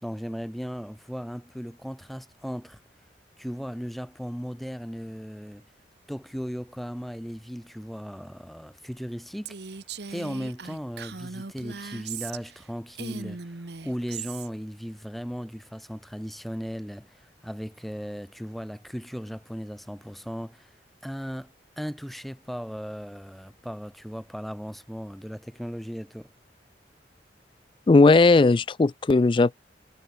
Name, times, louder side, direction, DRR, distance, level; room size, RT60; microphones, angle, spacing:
voice 1, 0.0-2.8 3.4-5.6 6.1-9.8 10.1-20.7 21.0-26.3, equal, ahead, 3.4 m, -37 dB
Female speech woman speaking, 9.5-12.6 12.9-14.5, right 5 dB, 70° right, 1.1 m, -38 dB
voice 2, 27.9-29.6, left 3 dB, 30° left, 0.3 m, -17 dB
head